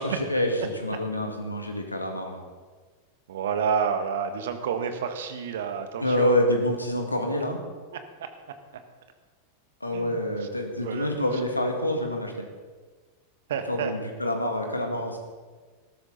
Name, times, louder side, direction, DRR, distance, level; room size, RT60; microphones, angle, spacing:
voice 1, 0.0-2.4 6.0-7.6 9.8-12.5 13.7-15.2, left 1 dB, 85° left, 4 dB, 1.9 m, -27 dB
voice 2, 3.3-6.5 7.9-8.0 9.9-10.2 10.8-11.1 13.5-13.9, right 6 dB, 60° right, 8 dB, 1.4 m, -29 dB
19.0 x 13.0 x 4.0 m, 1.4 s
figure-of-eight pair, 90°, 0 cm